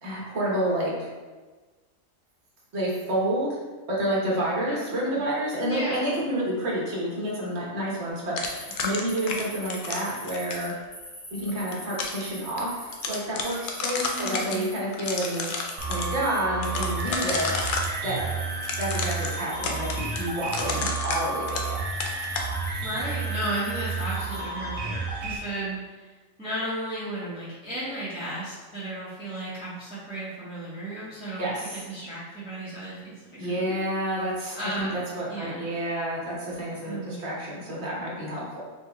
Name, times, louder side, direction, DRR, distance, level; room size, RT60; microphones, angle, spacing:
voice 1, 0.0-1.1 2.7-3.6 3.9-10.7 11.3-15.5 15.9-17.5 18.0-18.3 18.8-21.8 31.4-31.9 33.3-38.6, right 1 dB, 55° right, -5 dB, 1.4 m, -29 dB
voice 2, 4.7-5.2 5.7-6.1 14.1-14.8 22.8-26.1 26.4-33.9 34.5-35.0 35.3-35.7 36.9-37.3, right 1 dB, 5° right, -11 dB, 1.0 m, -34 dB
sound 1, 8.4-10.7 11.5-12.2 12.6-12.7 12.9-14.6 14.9-16.1 16.6-17.9 18.6-21.7 22.0-22.5, left 4 dB, 70° left, 0.5 m, -31 dB
sound 2, 8.4-20.8 21.1-24.4, equal, 40° left, 1.5 m, -43 dB
sound 3, 15.8-25.4, right 4 dB, 80° right, 1.1 m, -31 dB
4.5 x 4.0 x 2.3 m, 1.3 s
omnidirectional pair, 1.4 m